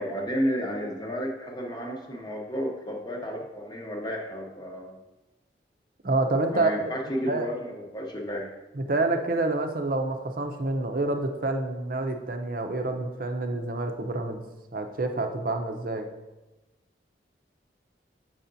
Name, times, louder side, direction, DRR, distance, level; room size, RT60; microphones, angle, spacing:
voice 1, 0.0-5.0 6.5-8.5, equal, 25° left, 0 dB, 0.8 m, -32 dB
voice 2, 6.0-6.7 7.2-7.5 8.7-14.4 14.7-16.1, right 2 dB, 50° right, 6 dB, 0.6 m, -28 dB
7.6 x 5.7 x 2.7 m, 1.1 s
head